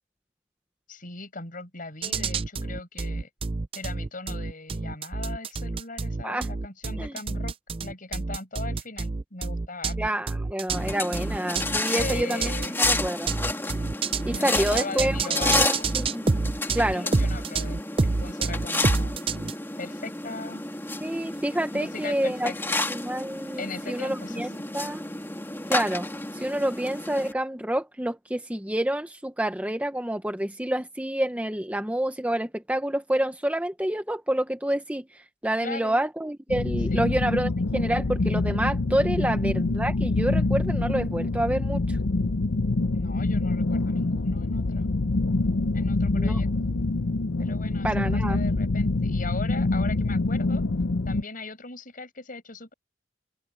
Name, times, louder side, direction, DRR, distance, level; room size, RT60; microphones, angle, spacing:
voice 1, 0.9-3.3 3.7-7.5 7.8-10.0 11.7-12.8 14.3-15.9 16.9-19.2 19.8-20.6 21.7-22.5 23.6-24.5 35.6-36.0 36.9-37.0 39.2-39.5 42.9-44.9 45.7-46.7 47.4-50.6 51.1-52.7, left 3 dB, 45° left, 6.3 m, -39 dB
sound 1, 2.0-19.5, right 3 dB, 30° right, 0.5 m, -28 dB
voice 2, 10.0-13.3 14.2-16.4 16.7-17.1 21.0-22.5 22.9-25.0 25.7-26.1 26.3-42.0 46.2-46.4 47.8-48.4, right 1 dB, 10° right, 0.9 m, -28 dB
sound 2, 10.7-27.3, left 2 dB, 10° left, 2.3 m, -31 dB
sound 3, 36.5-51.2, left 2 dB, 80° left, 0.8 m, -25 dB
open air
head